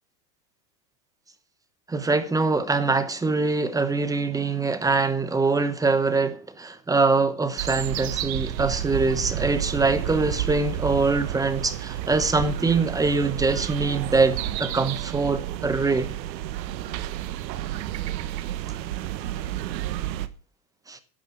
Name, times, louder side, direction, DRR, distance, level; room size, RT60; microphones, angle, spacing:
voice 1, 1.9-16.1 20.9-21.0, right 3 dB, 5° right, 0.9 m, -23 dB
sound 1, 7.6-20.3, right 13 dB, 80° right, 1.4 m, -31 dB
11.5 x 11.0 x 6.0 m
supercardioid pair, 145°, 50 cm